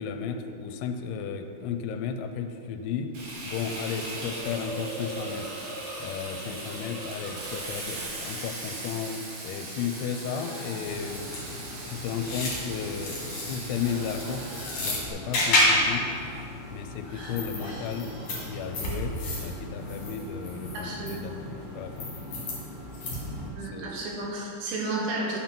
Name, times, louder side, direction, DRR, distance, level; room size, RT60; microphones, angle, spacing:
voice 1, 0.0-3.1 3.4-5.5 6.0-9.2 9.4-11.3 11.7-13.2 13.5-16.1 16.7-18.2 18.5-22.1 23.6-23.9, left 6 dB, 85° left, 6 dB, 2.9 m, -34 dB
Frying (food), 3.1-15.1, right 2 dB, 60° right, 2.7 m, -39 dB
Hiss, 3.6-19.0, right 1 dB, 45° right, 2.4 m, -45 dB
sound 1, 10.8-23.5, left 1 dB, 45° left, 2.6 m, -31 dB
voice 2, 20.7-21.3 23.5-25.4, right 2 dB, 85° right, -3 dB, 4.0 m, -32 dB
9.0 x 6.0 x 5.8 m, 2.6 s
omnidirectional pair, 5.4 m